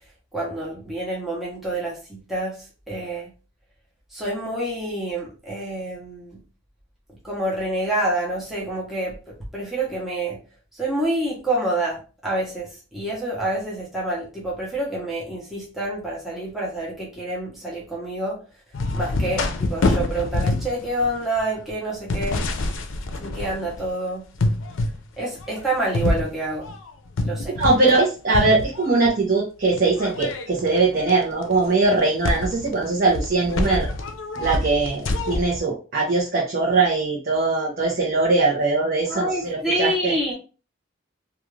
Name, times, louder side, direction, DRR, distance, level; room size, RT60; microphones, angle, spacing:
voice 1, 0.3-2.6 2.9-3.3 4.1-6.4 7.2-10.4 10.8-18.4 18.9-22.4 23.2-24.3 25.2-26.7 27.2-27.6 39.1-40.3, right 1 dB, ahead, -5 dB, 0.8 m, -27 dB
sound 1, 18.7-23.9 24.3-25.0 25.4-28.1 28.3-29.1 29.7-35.6, left 2 dB, 75° left, 0.5 m, -26 dB
voice 2, 27.6-33.9 34.4-40.1, right 3 dB, 50° right, -4 dB, 0.7 m, -21 dB
2.4 x 2.4 x 3.1 m, 0.35 s
head